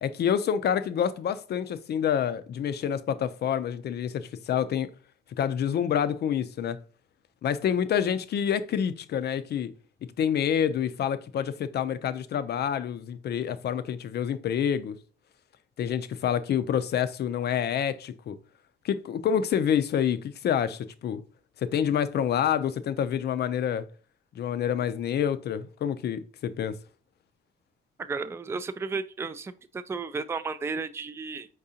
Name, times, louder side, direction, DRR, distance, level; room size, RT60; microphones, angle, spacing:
voice 1, 0.0-4.9 5.4-6.8 7.4-9.7 10.2-15.0 15.8-18.3 18.8-21.2 21.6-23.9 24.4-26.8, left 8 dB, 55° left, 0.5 m, -27 dB
voice 2, 28.0-31.5, right 4 dB, 15° right, 0.3 m, -33 dB
4.7 x 3.7 x 2.7 m
cardioid pair, 90°, 20 cm